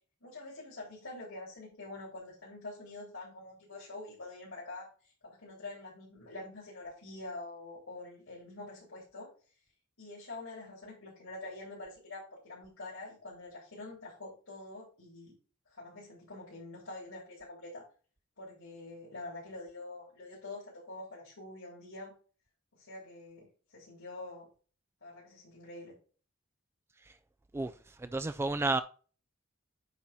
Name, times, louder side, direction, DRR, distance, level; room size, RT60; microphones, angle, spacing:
voice 1, 0.2-9.3 10.0-15.3 15.7-17.8 18.4-22.1 22.8-23.5 23.7-24.5 25.0-26.0, left 2 dB, 75° left, 3.8 m, -46 dB
voice 2, 27.5-28.8, right 2 dB, 10° right, 0.3 m, -32 dB
9.0 x 4.2 x 4.2 m
head